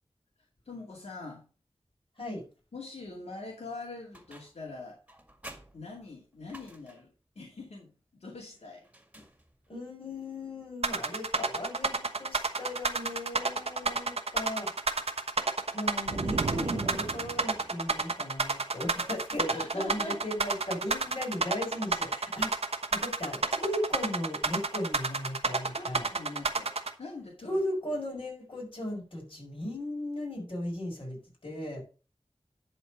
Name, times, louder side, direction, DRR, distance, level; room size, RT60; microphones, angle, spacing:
voice 1, 0.6-1.4 2.7-5.0 5.7-8.9 19.5-20.2 25.8-26.7 27.0-27.6, left 3 dB, 85° left, -2 dB, 2.3 m, -43 dB
sound 1, 4.1-4.7 5.1-7.2 8.8-9.8, right 1 dB, 10° right, 1.9 m, -51 dB
voice 2, 9.7-14.7 15.7-26.1 27.4-31.2 31.4-31.8, left 1 dB, 55° left, -2 dB, 5.3 m, -36 dB
sound 2, 10.8-26.9, right 3 dB, 70° right, 1.1 m, -29 dB
sound 3, 16.1-17.6, right 4 dB, 50° right, 0.5 m, -35 dB
11.0 x 4.4 x 6.0 m, 0.35 s
wide cardioid pair, 85°, 11 cm